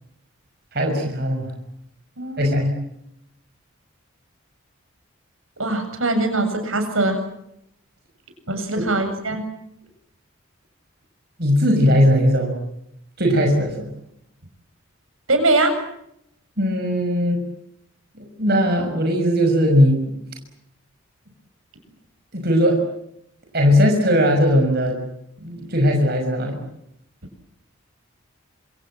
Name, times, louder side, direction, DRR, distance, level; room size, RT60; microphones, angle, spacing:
voice 1, 0.7-1.5 2.4-2.8 11.4-12.6 13.2-13.9 16.6-17.4 18.1-20.0 22.3-22.8 23.5-25.0 25.4-26.6, equal, 50° right, 3 dB, 6.0 m, -18 dB
voice 2, 2.2-2.7 5.6-7.2 8.5-9.4 15.3-15.7, right 2 dB, 75° right, 6 dB, 7.6 m, -22 dB
27.0 x 26.5 x 7.6 m, 0.77 s
head